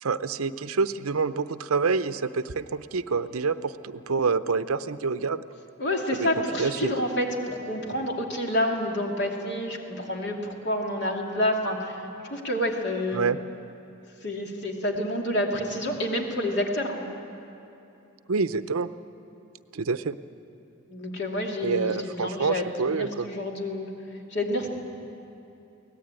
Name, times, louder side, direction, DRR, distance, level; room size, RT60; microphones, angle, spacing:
voice 1, 0.0-5.4 6.1-6.9 13.1-13.4 18.3-18.9 19.7-20.2 21.6-23.3, right 4 dB, 85° right, 13 dB, 0.7 m, -27 dB
voice 2, 5.8-13.2 14.2-17.0 20.9-22.6 22.9-23.9 24.3-24.7, left 1 dB, 55° left, 1 dB, 2.7 m, -28 dB
23.5 x 18.0 x 8.9 m, 2.8 s
head